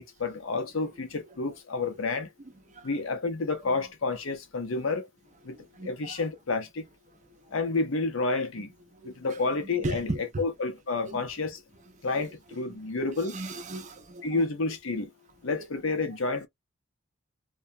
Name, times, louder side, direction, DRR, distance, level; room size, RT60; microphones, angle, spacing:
voice 1, 0.0-2.3 2.8-5.1 5.4-5.6 5.8-6.9 7.5-8.7 9.0-11.6 12.0-13.4 14.2-15.1 15.4-16.5, left 3 dB, 75° left, 0.7 m, -30 dB
voice 2, 5.5-6.1 9.0-9.4 9.8-10.4 11.0-11.2 13.3-14.2, right 1 dB, 35° right, 0.6 m, -36 dB
2.3 x 2.1 x 2.6 m
head